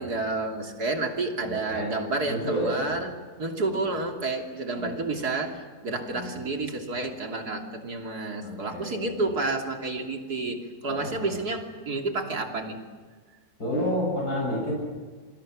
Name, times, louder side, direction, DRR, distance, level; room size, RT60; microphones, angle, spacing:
voice 1, 0.0-12.8, right 3 dB, 80° right, 3 dB, 3.5 m, -30 dB
voice 2, 1.4-2.0 2.3-2.8 3.7-3.8 4.8-5.0 6.1-6.4 8.4-9.2 10.9-11.4 13.6-14.7, equal, 85° left, -2 dB, 7.9 m, -30 dB
27.5 x 25.0 x 6.3 m, 1.5 s
omnidirectional pair, 1.6 m